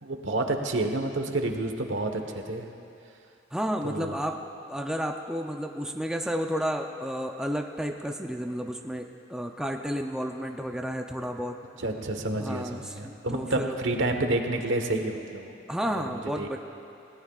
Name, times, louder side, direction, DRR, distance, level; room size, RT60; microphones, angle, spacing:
voice 1, 0.0-2.7 3.8-4.1 11.8-15.6 16.4-16.5, right 2 dB, 75° right, 4 dB, 1.3 m, -29 dB
voice 2, 3.5-4.4 4.7-11.6 12.4-13.8 15.7-16.6, equal, 5° right, 3 dB, 0.6 m, -32 dB
29.0 x 17.5 x 2.4 m, 2.6 s
head